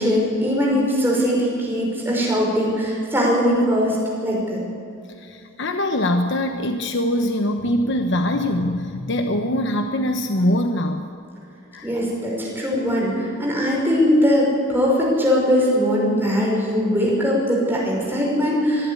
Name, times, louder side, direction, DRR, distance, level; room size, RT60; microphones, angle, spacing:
voice 1, 0.0-4.0 4.2-4.6 11.8-18.9, equal, 10° right, -4 dB, 5.8 m, -20 dB
voice 2, 5.2-11.0 11.7-11.9, left 1 dB, 55° left, 6 dB, 1.1 m, -23 dB
24.0 x 11.5 x 10.0 m, 2.5 s
head